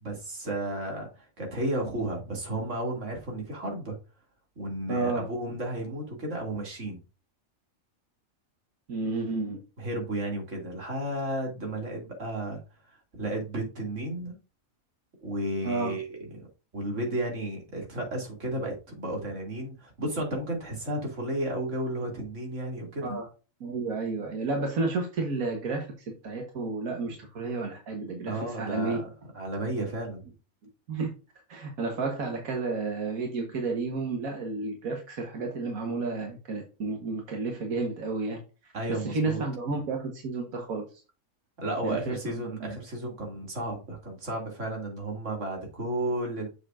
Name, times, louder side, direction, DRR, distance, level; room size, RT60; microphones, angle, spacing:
voice 1, 0.0-4.0 4.6-7.0 9.8-12.6 12.9-14.4 15.2-16.5 16.7-23.2 28.3-29.1 29.3-30.3 38.7-39.4 39.7-39.8 41.6-46.5, right 1 dB, 60° right, 0 dB, 2.8 m, -33 dB
voice 2, 4.9-5.2 8.9-9.6 15.6-15.9 23.0-23.3 23.6-29.0 30.9-31.1 31.5-40.9 41.8-42.4, right 3 dB, 85° right, 2 dB, 1.7 m, -31 dB
7.1 x 6.6 x 2.5 m, 0.32 s
omnidirectional pair, 1.4 m